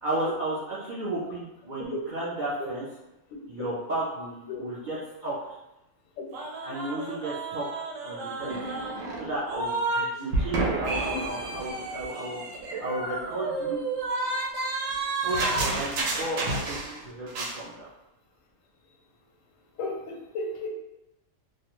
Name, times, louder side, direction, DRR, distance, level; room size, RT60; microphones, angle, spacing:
voice 1, 0.0-2.9 3.5-5.0 5.2-5.3 6.6-7.6 8.0-8.6 9.2-12.4 12.8-13.8 15.2-17.9, right 1 dB, 55° right, -8 dB, 0.5 m, -33 dB
sound 1, 6.3-10.1 10.3-17.0 17.3-17.6, right 2 dB, 80° right, 1.0 m, -30 dB
voice 2, 19.8-20.7, left 3 dB, 85° left, 0 dB, 1.0 m, -34 dB
2.3 x 2.2 x 2.9 m, 0.91 s
omnidirectional pair, 1.3 m